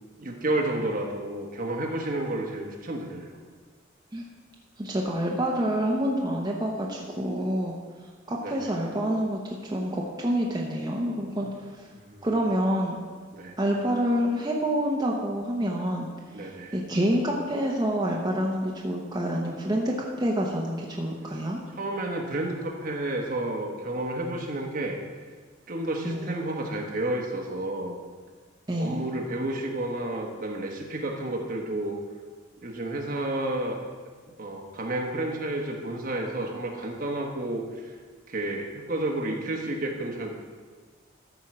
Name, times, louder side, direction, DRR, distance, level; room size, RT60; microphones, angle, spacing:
voice 1, 0.2-3.4 8.4-8.7 11.9-12.3 13.3-13.6 16.3-16.8 21.7-25.0 25.7-28.0 28.8-32.0 32.6-33.8 34.4-37.9 38.3-40.3, right 1 dB, 45° right, 1 dB, 1.2 m, -31 dB
voice 2, 4.8-7.7 8.3-11.9 12.2-13.0 13.6-16.1 16.4-21.6 26.0-26.4 28.7-29.0, equal, 20° right, -2 dB, 0.9 m, -27 dB
13.5 x 4.5 x 6.1 m, 1.5 s
head